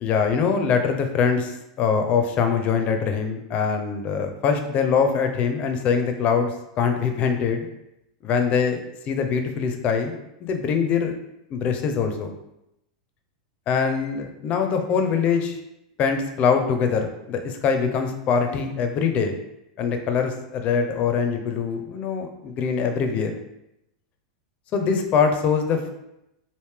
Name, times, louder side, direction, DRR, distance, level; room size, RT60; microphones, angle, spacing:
voice 1, 0.0-7.7 8.2-8.8 9.1-10.2 10.4-11.1 11.5-12.3 13.7-15.6 16.0-19.3 19.8-23.4 24.7-25.9, left 6 dB, 35° left, 6 dB, 0.5 m, -23 dB
3.2 x 2.5 x 3.4 m, 0.85 s
hypercardioid pair, 125°, 4 cm